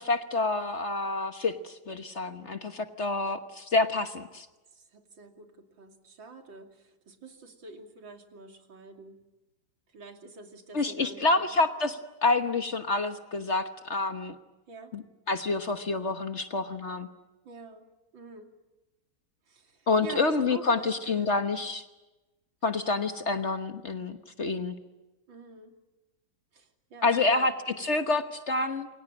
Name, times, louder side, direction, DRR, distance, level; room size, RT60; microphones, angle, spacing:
voice 1, 0.0-4.5 10.7-14.3 14.9-17.1 19.9-21.8 22.6-24.7 27.0-28.9, left 3 dB, 40° left, 8 dB, 1.3 m, -28 dB
voice 2, 3.8-4.1 4.7-9.2 9.9-11.5 14.7-14.9 17.5-17.9 18.1-18.5 19.5-21.5 23.0-23.1 25.3-25.7 26.5-27.9, right 4 dB, 85° right, 4 dB, 3.5 m, -47 dB
28.5 x 23.5 x 8.8 m, 1.1 s
omnidirectional pair, 2.0 m